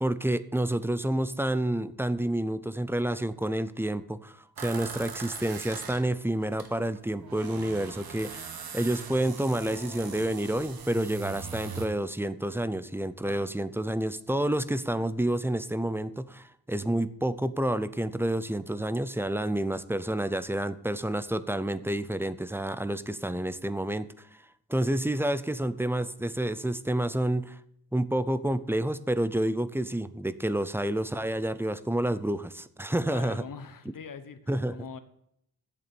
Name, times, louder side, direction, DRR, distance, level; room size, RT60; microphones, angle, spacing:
voice 1, 0.0-8.5 8.7-24.4 24.7-27.6 27.9-33.4 34.5-34.8, right 1 dB, 5° right, 14 dB, 0.5 m, -29 dB
sound 1, 4.6-6.7 6.9-11.9, right 6 dB, 85° right, 1.6 m, -41 dB
sound 2, 9.4-11.5, equal, 15° left, 2.8 m, -47 dB
voice 2, 33.1-34.4 34.7-35.0, left 6 dB, 65° left, 11 dB, 1.2 m, -42 dB
8.3 x 7.3 x 8.6 m, 0.73 s
wide cardioid pair, 105°, 35 cm